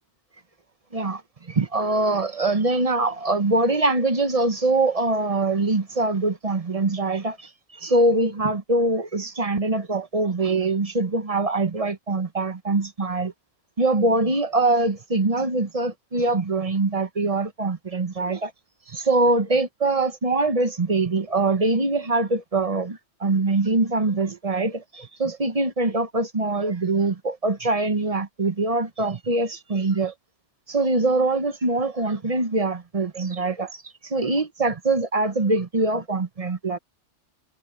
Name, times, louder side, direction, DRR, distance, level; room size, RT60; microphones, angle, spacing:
voice 1, 0.9-13.3 13.8-18.5 18.9-30.1 30.7-36.8, right 2 dB, 35° right, 1.0 m, -23 dB
omnidirectional pair, 1.2 m